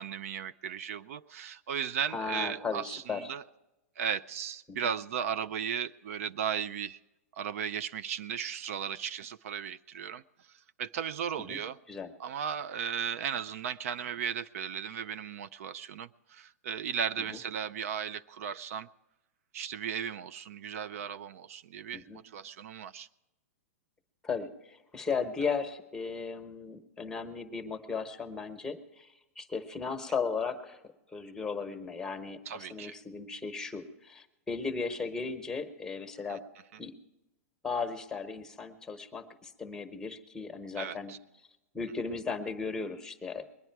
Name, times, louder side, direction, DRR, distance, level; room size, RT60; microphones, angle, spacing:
voice 1, 0.0-3.4 4.0-7.0 7.4-10.2 10.8-11.8 12.2-18.9 19.5-23.1 32.5-33.0 36.3-36.4 40.8-41.2, right 8 dB, 65° right, 0.4 m, -36 dB
voice 2, 2.1-3.3 4.7-4.8 11.5-11.6 11.9-12.1 17.3-17.4 21.9-22.2 24.2-30.8 31.1-36.4 36.8-36.9 37.6-41.1 41.7-43.4, left 5 dB, 5° left, 1.0 m, -36 dB
21.5 x 9.8 x 4.6 m
hypercardioid pair, 140°, 8 cm